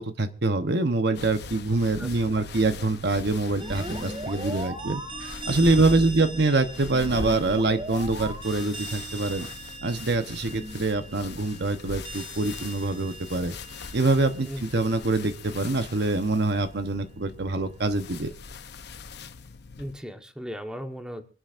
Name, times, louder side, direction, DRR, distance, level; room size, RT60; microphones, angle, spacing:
voice 1, 0.0-9.5 9.8-13.6 13.9-18.3, right 2 dB, 65° right, 8 dB, 1.0 m, -25 dB
sound 1, 1.1-20.0, left 4 dB, 65° left, 0.8 m, -41 dB
voice 2, 2.0-2.4 5.7-6.2 14.5-14.6 19.8-21.2, equal, 5° right, 5 dB, 1.3 m, -37 dB
sound 2, 3.6-15.1, right 2 dB, 30° right, 1.6 m, -39 dB
26.0 x 11.0 x 2.6 m, 0.35 s
head